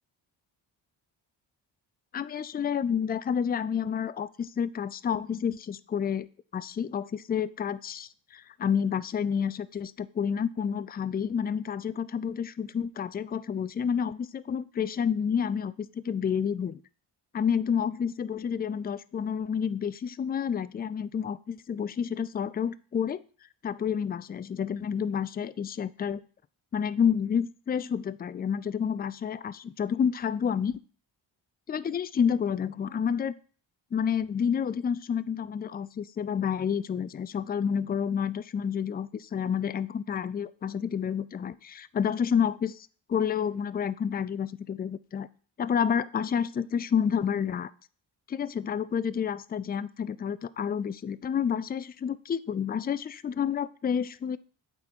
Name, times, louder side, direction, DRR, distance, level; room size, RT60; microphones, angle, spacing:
voice 1, 2.1-6.3 6.5-16.8 17.3-23.2 23.6-26.2 26.7-30.8 31.7-33.3 33.9-45.3 45.6-47.7 48.3-54.4, left 7 dB, 20° left, 16 dB, 0.3 m, -29 dB
8.3 x 4.1 x 4.4 m, 0.41 s
cardioid pair, 60°, 50 cm